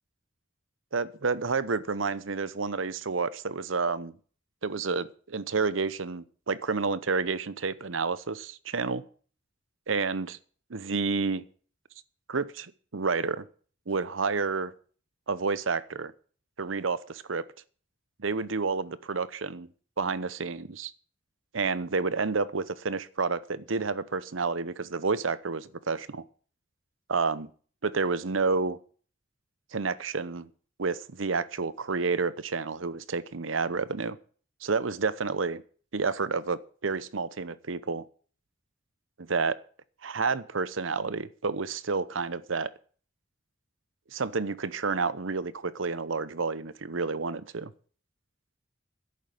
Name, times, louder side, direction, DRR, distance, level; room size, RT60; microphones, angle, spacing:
voice 1, 0.9-4.1 4.6-9.0 9.9-10.4 10.7-11.4 12.3-12.6 12.9-13.5 13.9-14.7 15.3-16.1 16.6-17.4 18.2-19.7 20.0-20.9 21.5-26.2 27.1-27.5 27.8-28.8 29.7-30.5 30.8-34.2 34.6-35.6 35.9-38.0 39.3-39.6 40.0-42.7 44.1-47.7, right 4 dB, 85° right, 17 dB, 0.9 m, -30 dB
11.0 x 8.6 x 7.8 m, 0.43 s
head